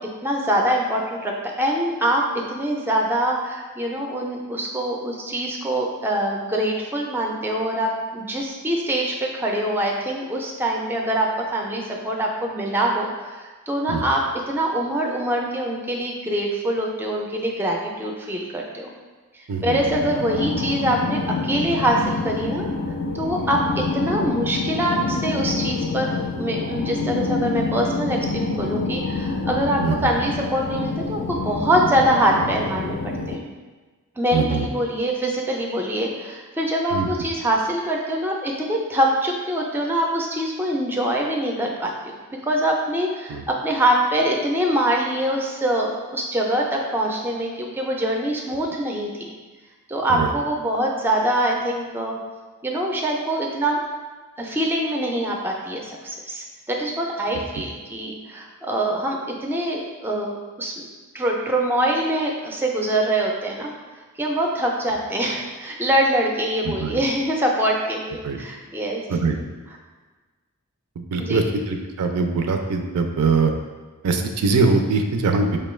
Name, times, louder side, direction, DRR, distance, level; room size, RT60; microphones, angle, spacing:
voice 1, 0.2-1.3 1.6-2.2 2.5-14.2 14.5-18.9 19.4-22.7 23.1-33.0 33.3-33.4 34.2-42.2 42.4-49.3 49.9-52.2 52.6-53.8 54.4-60.7 61.1-63.7 64.2-69.0 71.2-71.4, right 1 dB, 10° right, -1 dB, 0.3 m, -24 dB
sound 1, 19.7-33.4, left 3 dB, 60° left, 0.4 m, -27 dB
voice 2, 29.8-30.1 34.3-34.7 36.9-37.1 43.3-43.4 50.1-50.3 66.6-67.0 68.2-68.4 69.1-69.4 71.0-73.5 74.0-75.6, right 4 dB, 80° right, 5 dB, 0.4 m, -22 dB
4.9 x 2.2 x 3.1 m, 1.3 s
head